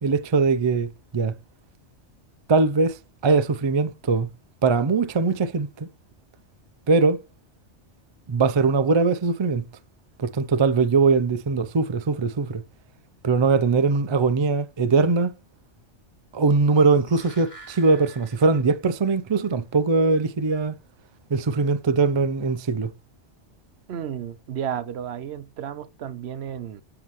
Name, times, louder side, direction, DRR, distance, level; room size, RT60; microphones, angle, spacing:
voice 1, 0.0-1.3 2.5-4.3 4.6-5.9 6.9-7.2 8.3-9.6 10.2-12.6 13.2-15.3 16.3-20.7 21.3-22.9, right 4 dB, 40° right, 0.4 m, -21 dB
sound 1, 16.8-19.1 19.4-19.5, right 2 dB, 35° left, 2.5 m, -47 dB
voice 2, 23.9-26.8, right 9 dB, 65° right, 0.9 m, -32 dB
7.4 x 6.9 x 3.1 m
omnidirectional pair, 1.2 m